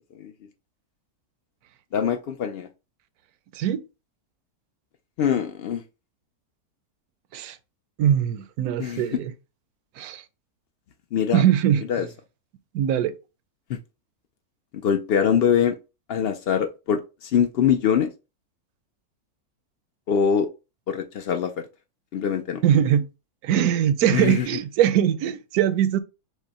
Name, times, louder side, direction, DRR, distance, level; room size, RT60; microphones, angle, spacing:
voice 1, 1.9-2.7 5.2-5.8 8.8-9.2 11.1-11.4 11.9-12.1 13.7-13.8 14.7-15.8 16.1-18.1 20.1-20.5 20.9-21.7 22.1-22.6 24.1-24.5, left 8 dB, 85° left, 0.5 m, -23 dB
voice 2, 8.0-9.3 10.0-10.2 11.3-11.8 12.7-13.1 22.6-23.1 23.4-26.0, right 10 dB, 80° right, 1.1 m, -21 dB
6.2 x 2.1 x 4.0 m
omnidirectional pair, 1.6 m